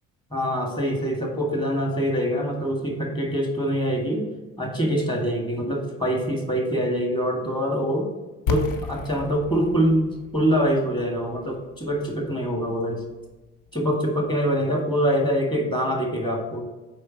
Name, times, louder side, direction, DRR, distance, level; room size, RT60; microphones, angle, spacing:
voice 1, 0.3-4.3 4.6-8.1 8.5-13.0 13.7-16.6, equal, 10° left, 1 dB, 1.8 m, -24 dB
sound 1, 8.5-14.2, left 4 dB, 55° left, 0.8 m, -35 dB
7.6 x 5.0 x 2.9 m, 1.1 s
figure-of-eight pair, 55°, 38 cm